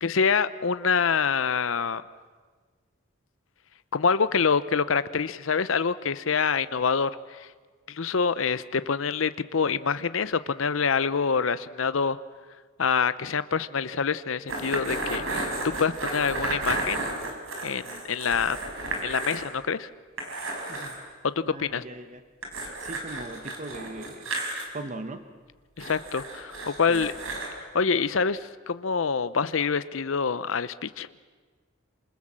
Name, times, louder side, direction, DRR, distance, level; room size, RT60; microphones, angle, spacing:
voice 1, 0.0-2.0 3.9-7.5 7.9-12.2 12.8-17.0 17.6-18.6 19.0-19.9 21.2-21.3 21.6-21.8 22.6-22.8 25.8-27.1 27.7-31.1, left 5 dB, 75° left, 14 dB, 0.7 m, -26 dB
sound 1, 14.5-19.5 19.8-19.9 20.2-21.0 22.4-24.6 25.8-27.5, right 2 dB, 80° right, 5.8 m, -33 dB
voice 2, 21.4-22.2 22.8-24.3 24.7-25.2 26.9-27.1, right 2 dB, 35° right, 9 dB, 1.2 m, -39 dB
28.5 x 27.0 x 7.5 m, 1.5 s
head